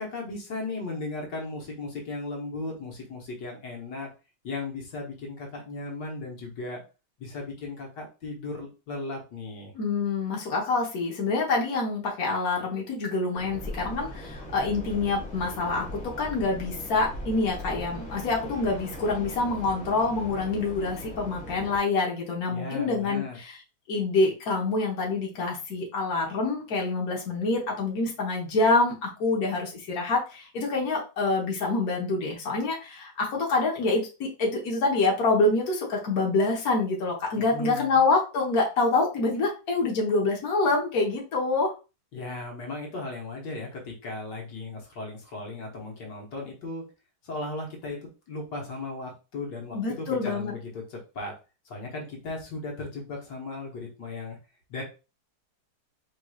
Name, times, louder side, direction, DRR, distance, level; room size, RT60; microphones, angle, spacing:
voice 1, 0.0-4.1 4.4-6.8 7.2-9.7 22.5-23.4 37.4-38.0 42.1-46.8 47.2-48.0 48.3-51.3 51.7-54.4 54.7-54.8, left 3 dB, 80° left, -1 dB, 1.9 m, -36 dB
voice 2, 9.7-23.6 23.9-41.7 49.7-50.5, left 3 dB, 60° left, -2 dB, 1.6 m, -26 dB
sound 1, 13.4-21.8, equal, 5° left, 1.4 m, -39 dB
4.7 x 3.7 x 2.4 m, 0.31 s
omnidirectional pair, 1.8 m